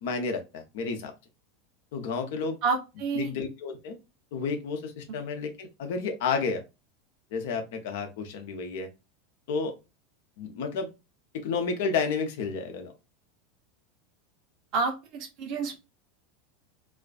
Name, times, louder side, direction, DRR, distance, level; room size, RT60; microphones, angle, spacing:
voice 1, 0.0-1.1 1.9-2.6 3.1-4.0 4.3-6.6 7.3-8.9 9.5-9.7 10.4-10.9 11.3-12.9, left 5 dB, 60° left, 6 dB, 0.6 m, -31 dB
voice 2, 2.6-3.3 14.7-15.8, right 4 dB, 45° right, 3 dB, 0.8 m, -29 dB
2.4 x 2.3 x 2.3 m, 0.26 s
figure-of-eight pair, 80°, 0 cm